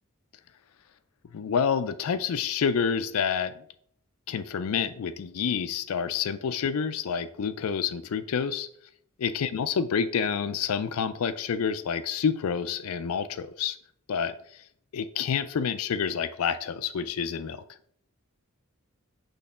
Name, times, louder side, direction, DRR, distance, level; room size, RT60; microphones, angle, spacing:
voice 1, 1.3-3.5 4.3-8.7 9.2-13.8 14.1-14.3 14.9-17.6, left 6 dB, 80° left, 11 dB, 0.4 m, -28 dB
6.4 x 3.2 x 5.5 m, 0.65 s
head